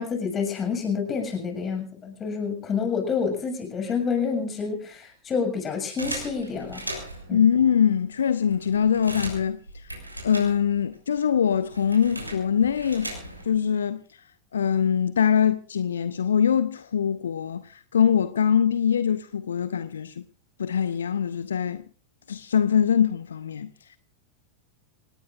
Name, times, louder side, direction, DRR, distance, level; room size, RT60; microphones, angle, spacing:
voice 1, 0.0-6.8 7.3-7.4, left 5 dB, 25° left, 6.9 m, -28 dB
sound 1, 6.0-7.3 8.0-8.1 8.3-10.9 11.2-13.6, right 1 dB, 85° right, 6.4 m, -38 dB
voice 2, 7.3-9.9 10.2-13.1 13.4-14.2 14.5-20.2 20.6-21.8 22.3-23.7, left 8 dB, 70° left, 0.8 m, -23 dB
27.0 x 19.0 x 2.6 m
figure-of-eight pair, 90°, 0 cm